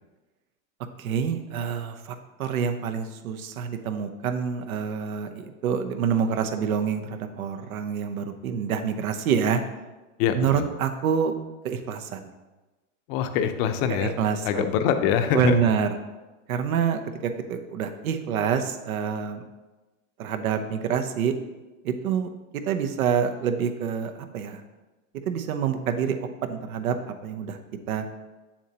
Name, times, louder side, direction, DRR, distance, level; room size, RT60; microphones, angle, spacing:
voice 1, 1.0-9.6 10.3-11.3 11.6-12.3 13.9-14.6 15.3-15.9 16.5-19.4 20.2-21.4 21.8-24.6 25.3-26.2 26.4-27.0 27.2-27.6 27.9-28.0, right 7 dB, 85° right, 7 dB, 0.9 m, -27 dB
voice 2, 10.2-10.7 13.1-14.1 14.4-15.6, left 8 dB, 50° left, 8 dB, 0.8 m, -24 dB
7.4 x 7.2 x 2.9 m, 1.2 s
hypercardioid pair, 120°, 41 cm